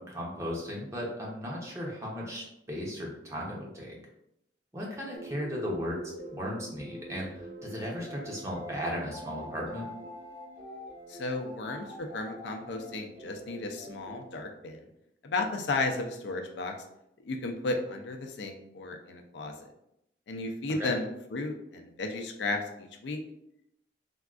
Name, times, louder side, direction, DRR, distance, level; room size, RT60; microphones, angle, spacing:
voice 1, 0.0-4.0 4.7-6.0 6.3-9.9 20.8-20.9, equal, 15° right, -3 dB, 0.6 m, -36 dB
sound 1, 5.1-14.3, equal, 40° right, 1.0 m, -45 dB
voice 2, 11.1-14.9 15.2-16.7 17.2-19.5 20.3-23.2, left 2 dB, 75° left, 3 dB, 0.4 m, -34 dB
3.5 x 2.3 x 2.3 m, 0.81 s
head